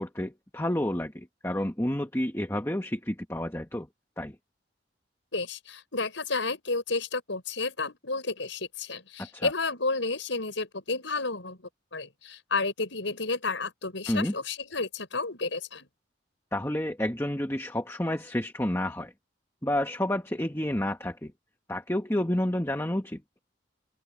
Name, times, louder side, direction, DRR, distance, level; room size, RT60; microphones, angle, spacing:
voice 1, 0.0-3.9 4.2-4.4 9.2-9.5 14.1-14.3 16.5-19.1 19.6-21.3 21.7-23.2, left 1 dB, 15° left, 1.4 m, -30 dB
voice 2, 5.3-11.6 11.9-15.9, left 3 dB, 80° left, 5.9 m, -31 dB
head